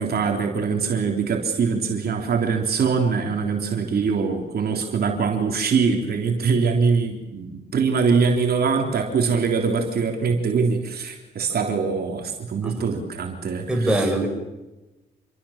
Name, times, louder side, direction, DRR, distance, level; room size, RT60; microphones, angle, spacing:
voice 1, 0.0-14.1, right 5 dB, 60° right, 2 dB, 3.5 m, -23 dB
voice 2, 13.7-14.3, right 1 dB, 5° right, 1 dB, 7.4 m, -22 dB
27.5 x 23.5 x 7.3 m, 1.1 s
cardioid pair, 95°, 18 cm